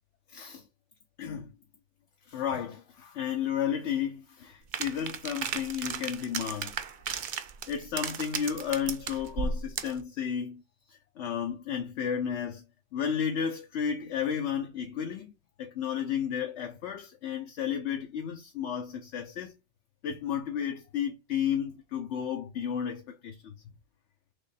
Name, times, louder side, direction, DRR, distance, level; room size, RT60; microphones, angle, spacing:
voice 1, 0.3-0.6 1.2-1.5 2.3-6.8 7.7-10.6 10.9-12.6 12.9-15.3 15.6-19.5 20.0-23.5, left 8 dB, 70° left, 0.9 m, -32 dB
sound 1, 4.7-10.0, right 6 dB, 55° right, 0.6 m, -35 dB
3.5 x 3.0 x 4.0 m
omnidirectional pair, 1.2 m